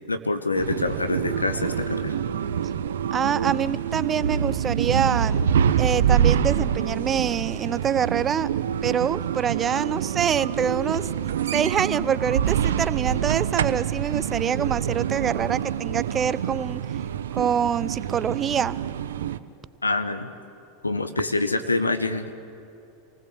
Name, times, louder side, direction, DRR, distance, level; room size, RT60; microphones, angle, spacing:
voice 1, 0.1-2.1 19.8-20.3 20.8-22.4, left 3 dB, 90° left, 8 dB, 1.4 m, -26 dB
sound 1, 0.5-19.4, right 8 dB, 70° right, 0.8 m, -26 dB
voice 2, 3.1-5.4 5.8-8.5 8.8-11.1 11.5-16.8 17.3-18.8, right 8 dB, 30° right, 18 dB, 0.7 m, -25 dB
27.5 x 19.0 x 7.9 m, 2.7 s
figure-of-eight pair, 85°, 0 cm